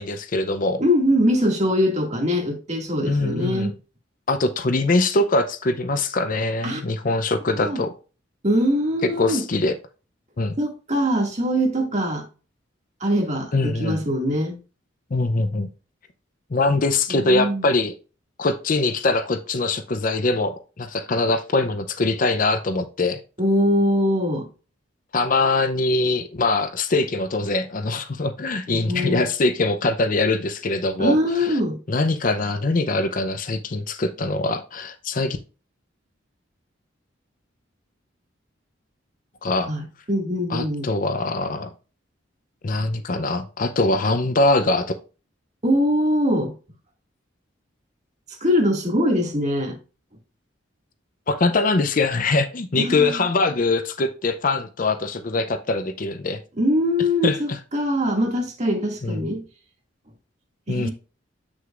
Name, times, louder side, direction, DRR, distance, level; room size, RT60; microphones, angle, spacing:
voice 1, 0.0-0.8 3.1-3.7 4.3-7.9 9.2-9.7 10.4-10.6 13.5-14.0 15.1-15.7 16.5-17.9 18.4-23.2 25.1-31.5 31.9-35.4 39.4-39.7 40.5-41.7 42.6-45.0 51.3-56.4 57.2-57.4 59.0-59.2 60.7-60.9, left 2 dB, 45° left, 0.6 m, -22 dB
voice 2, 0.8-3.7 6.6-6.8 7.5-7.8 8.4-9.4 10.6-12.3 13.0-14.6 17.1-17.6 23.4-24.5 28.7-29.3 31.0-31.8 39.7-40.9 45.6-46.5 48.4-49.8 52.8-53.2 56.6-59.4 60.7-60.9, equal, 40° right, 2.1 m, -22 dB
7.7 x 6.2 x 2.4 m
head